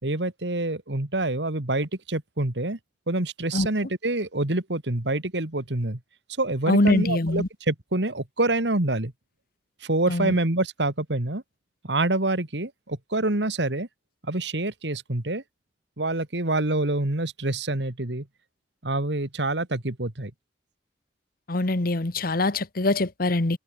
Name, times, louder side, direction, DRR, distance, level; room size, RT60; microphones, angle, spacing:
voice 1, 0.0-2.8 3.1-6.0 6.4-9.1 9.8-11.4 11.8-13.9 14.2-15.4 16.0-18.3 18.8-20.3, right 2 dB, 80° right, 2.3 m, -26 dB
voice 2, 6.7-7.5 10.1-10.3 21.5-23.6, left 2 dB, 55° left, 1.3 m, -23 dB
head